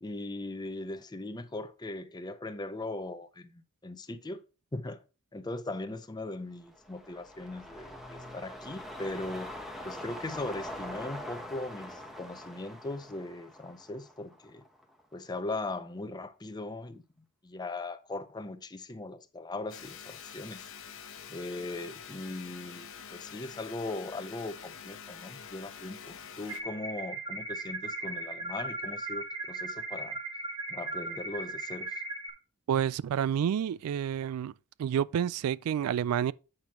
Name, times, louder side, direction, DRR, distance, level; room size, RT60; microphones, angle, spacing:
voice 1, 0.0-4.4 4.7-5.0 5.3-9.5 9.8-14.6 15.1-17.0 17.4-20.7 21.3-30.2 30.7-31.9, left 2 dB, 20° left, 0.6 m, -39 dB
sound 1, 6.6-15.0 15.4-15.5, left 1 dB, ahead, 1.0 m, -44 dB
sound 2, 19.7-26.6, left 7 dB, 65° left, 1.0 m, -46 dB
sound 3, 26.5-32.3, right 2 dB, 20° right, 1.2 m, -37 dB
voice 2, 32.7-34.5 34.8-36.3, right 9 dB, 75° right, 0.3 m, -29 dB
8.8 x 6.0 x 3.0 m
head